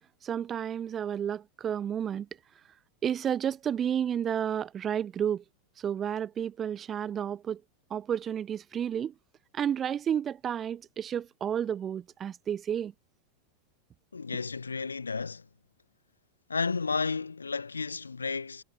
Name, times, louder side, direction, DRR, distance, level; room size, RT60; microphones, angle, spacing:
voice 1, 0.2-2.3 3.0-5.4 5.8-7.6 7.9-9.1 9.5-12.9, right 9 dB, 25° right, 0.5 m, -31 dB
voice 2, 14.1-15.5 16.5-18.6, left 4 dB, 75° left, 1.3 m, -32 dB
figure-of-eight pair, 90°, 0 cm